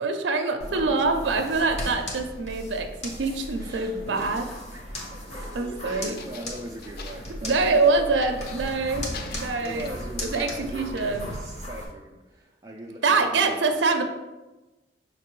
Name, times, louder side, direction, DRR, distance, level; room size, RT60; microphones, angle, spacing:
voice 1, 0.0-4.5 5.5-6.2 7.4-9.9 10.2-11.3 13.0-14.0, right 3 dB, 75° right, 6 dB, 0.5 m, -25 dB
sound 1, 0.6-11.8, equal, 40° left, 1.0 m, -37 dB
voice 2, 3.6-8.5 9.6-14.0, right 1 dB, 20° right, -2 dB, 0.3 m, -41 dB
sound 2, 5.1-5.3 6.2-7.8 8.2-8.8 9.1-11.1, left 5 dB, 60° left, 0.4 m, -44 dB
5.8 x 2.9 x 3.1 m, 1.1 s
head